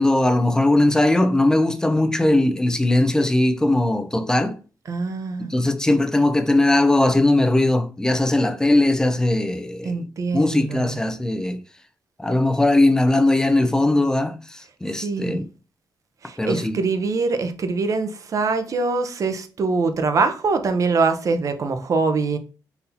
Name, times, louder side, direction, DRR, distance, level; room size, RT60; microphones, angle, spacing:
voice 1, 0.0-4.6 5.5-10.0 10.3-11.6 12.2-15.4 16.4-16.8, left 2 dB, 10° left, 0.6 m, -19 dB
voice 2, 4.9-5.5 9.8-11.0 15.0-15.4 16.2-22.4, right 4 dB, 50° right, 0.7 m, -23 dB
4.0 x 2.7 x 4.1 m
cardioid pair, 95°, 7 cm